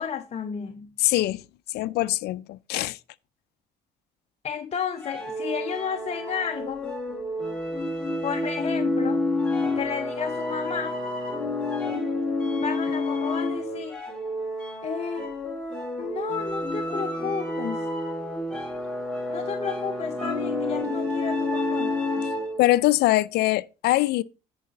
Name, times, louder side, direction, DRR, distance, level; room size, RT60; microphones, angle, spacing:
voice 1, 0.0-0.9 4.4-6.8 8.2-9.2 9.7-11.0 12.5-14.0 14.8-15.3 16.0-17.9 19.3-21.9, left 7 dB, 40° left, 0.8 m, -32 dB
voice 2, 1.0-1.4 1.7-3.0 22.6-24.2, left 17 dB, 75° left, 0.5 m, -22 dB
sound 1, 5.0-22.7, left 2 dB, 5° left, 2.8 m, -29 dB
9.9 x 4.8 x 5.2 m
cardioid pair, 110°, 17 cm